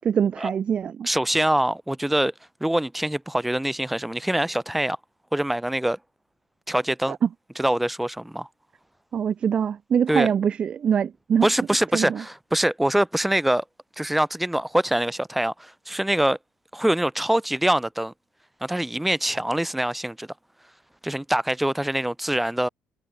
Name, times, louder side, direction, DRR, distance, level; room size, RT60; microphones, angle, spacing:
voice 1, 0.0-1.1 7.1-7.3 9.1-11.5 11.9-12.2, right 8 dB, 40° right, 6.4 m, -23 dB
voice 2, 1.0-2.3 2.6-5.0 5.3-6.0 6.7-7.2 7.6-8.5 10.1-10.3 11.4-13.6 14.0-16.4 16.7-18.1 18.6-20.3 21.0-22.7, right 1 dB, 5° right, 4.1 m, -24 dB
cardioid pair, 120°, 3 cm